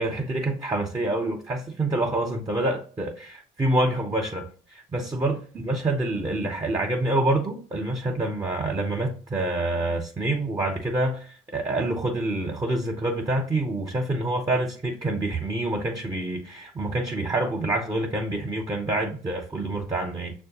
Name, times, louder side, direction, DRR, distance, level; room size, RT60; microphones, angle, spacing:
voice 1, 0.0-5.4 5.6-20.3, right 2 dB, 25° right, 0.8 m, -27 dB
6.2 x 2.2 x 2.9 m
supercardioid pair, 70°, 17 cm